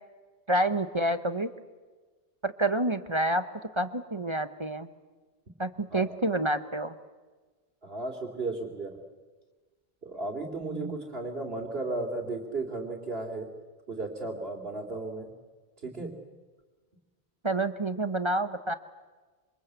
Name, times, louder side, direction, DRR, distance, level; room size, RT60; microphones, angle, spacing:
voice 1, 0.5-1.5 2.4-3.4 3.7-4.9 5.6-6.9 10.6-11.0 17.4-18.7, right 1 dB, 30° right, 11 dB, 1.0 m, -28 dB
voice 2, 7.8-9.0 10.0-13.5 13.9-15.3 15.8-16.1, right 2 dB, 70° right, -1 dB, 3.1 m, -34 dB
27.0 x 25.5 x 8.2 m, 1.3 s
omnidirectional pair, 1.0 m